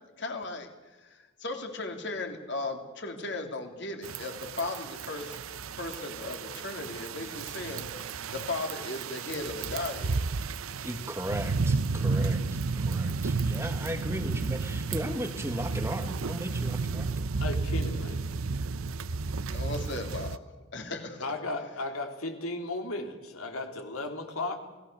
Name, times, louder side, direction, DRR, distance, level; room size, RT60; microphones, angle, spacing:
voice 1, 0.2-0.7 1.0-5.4 5.8-10.2 19.5-20.4 20.7-21.2, left 2 dB, 55° left, 4 dB, 3.3 m, -36 dB
sound 1, 4.0-20.4, right 4 dB, 75° right, 0.7 m, -32 dB
voice 2, 10.8-12.4 12.7-17.3, equal, 10° right, 7 dB, 1.3 m, -36 dB
voice 3, 17.4-18.2 21.2-24.6, left 2 dB, 80° left, 4 dB, 3.3 m, -35 dB
28.5 x 18.0 x 6.9 m, 1.3 s
head